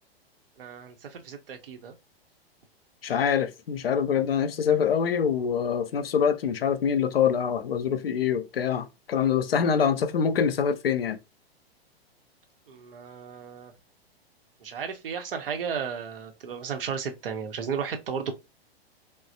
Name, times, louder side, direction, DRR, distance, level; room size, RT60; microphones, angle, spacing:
voice 1, 0.6-1.9 12.7-13.7 14.6-18.3, right 6 dB, 60° right, 0.8 m, -34 dB
voice 2, 3.0-11.2, left 7 dB, 70° left, 0.5 m, -25 dB
3.1 x 2.1 x 2.5 m
figure-of-eight pair, 105°, 31 cm